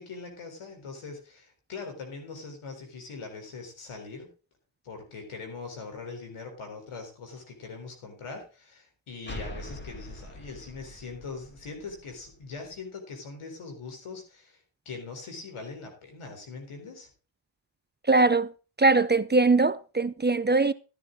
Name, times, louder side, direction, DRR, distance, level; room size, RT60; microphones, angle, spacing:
voice 1, 0.0-4.3 4.8-14.6 14.9-17.1, left 4 dB, 90° left, 4.0 m, -41 dB
sound 1, 9.3-12.8, equal, 20° left, 2.5 m, -43 dB
voice 2, 18.1-18.5 18.8-20.7, right 3 dB, 20° right, 0.6 m, -21 dB
13.5 x 9.7 x 3.8 m
cardioid pair, 55°, 48 cm